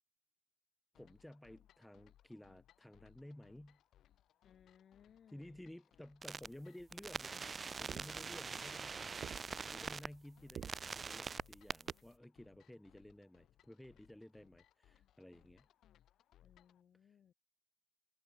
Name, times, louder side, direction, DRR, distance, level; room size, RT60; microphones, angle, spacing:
sound 1, 0.9-16.8, left 11 dB, 70° left, 1.4 m, -69 dB
voice 1, 0.9-3.8 5.3-7.5 7.8-15.7, left 1 dB, 5° left, 1.0 m, -55 dB
voice 2, 4.4-5.6 8.2-8.8 16.4-17.3, left 8 dB, 50° left, 3.2 m, -65 dB
sound 2, 6.2-6.5 6.9-10.1 10.5-11.9, right 5 dB, 30° right, 0.5 m, -43 dB
sound 3, 6.8-11.9, right 9 dB, 55° right, 1.0 m, -52 dB
cardioid pair, 120°, 0 cm